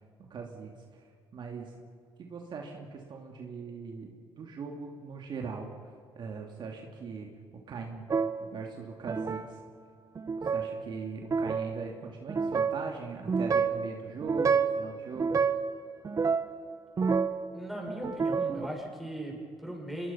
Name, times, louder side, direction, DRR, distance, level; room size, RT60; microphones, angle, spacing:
voice 1, 0.3-0.7 1.3-1.7 2.2-4.1 4.4-5.7 6.1-7.3 7.7-8.1 8.4-9.6 10.4-15.4, right 5 dB, 55° right, 1 dB, 2.7 m, -40 dB
sound 1, 8.1-8.5 9.1-9.5 10.2-10.7 11.2-11.7 12.3-12.8 13.3-13.8 14.2-14.8 15.2-15.7 16.0-17.5 17.9-18.7, right 5 dB, 35° right, 1.1 m, -28 dB
voice 2, 17.5-20.1, right 1 dB, ahead, 0 dB, 6.9 m, -38 dB
25.0 x 22.0 x 5.8 m, 2.1 s
cardioid pair, 95°, 9 cm